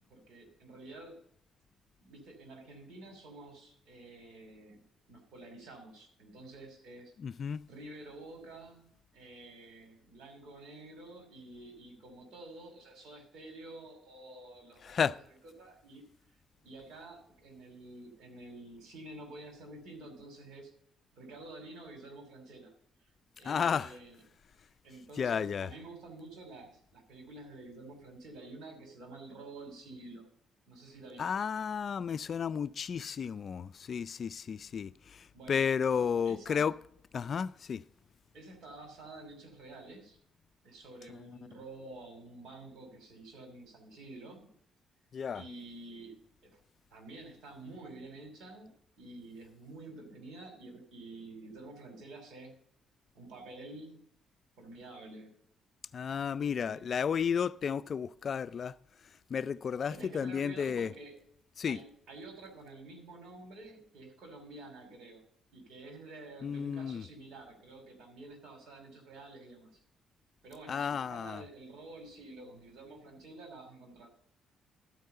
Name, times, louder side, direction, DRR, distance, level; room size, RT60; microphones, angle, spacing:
voice 1, 0.1-1.2 2.0-4.8 5.1-7.1 7.6-15.0 15.6-16.0 16.6-20.7 21.1-22.7 23.4-24.2 24.8-30.3 30.7-31.4 35.3-35.7 36.2-36.7 38.3-40.2 40.6-44.5 45.3-46.6 46.9-52.5 53.1-54.1 54.6-55.3 56.4-56.9 59.9-61.3 61.7-65.2 65.5-69.8 70.4-74.1, right 2 dB, 75° right, 2.7 m, -49 dB
voice 2, 7.2-7.6 14.8-15.2 23.4-23.9 25.2-25.7 31.2-36.7 37.1-37.8 41.1-41.2 45.1-45.4 55.9-58.8 59.3-60.9 61.6-61.8 66.4-67.0 70.7-71.4, left 7 dB, 50° left, 0.3 m, -32 dB
13.0 x 4.7 x 6.6 m
cardioid pair, 90°, 0 cm